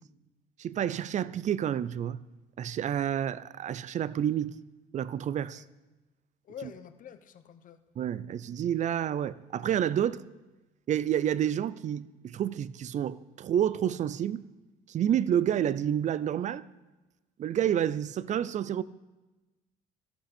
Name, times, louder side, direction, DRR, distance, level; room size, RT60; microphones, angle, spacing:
voice 1, 0.6-2.2 2.6-4.5 4.9-5.6 6.6-6.7 8.0-10.2 10.9-14.4 14.9-16.7 17.4-18.8, right 10 dB, 45° right, 0.5 m, -29 dB
voice 2, 6.5-7.8, left 8 dB, 50° left, 1.0 m, -46 dB
13.0 x 11.5 x 4.3 m
cardioid pair, 110°, 17 cm